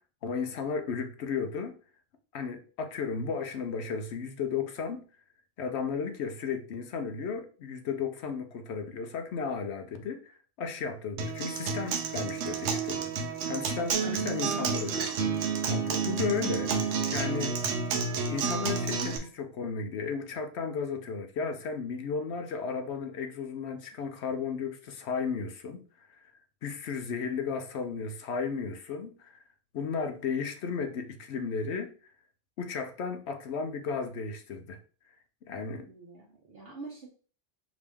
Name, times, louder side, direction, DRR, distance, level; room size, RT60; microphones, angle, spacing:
voice 1, 0.2-1.8 2.3-5.0 5.6-13.1 13.5-17.6 18.3-26.3 26.6-29.4 29.7-31.9 32.6-34.8 35.4-35.9, left 5 dB, 70° left, 0.9 m, -34 dB
Acoustic guitar, 11.2-19.2, right 5 dB, 75° right, 1.0 m, -30 dB
voice 2, 35.8-37.1, right 3 dB, 55° right, 1.1 m, -46 dB
4.8 x 2.7 x 3.5 m
omnidirectional pair, 1.2 m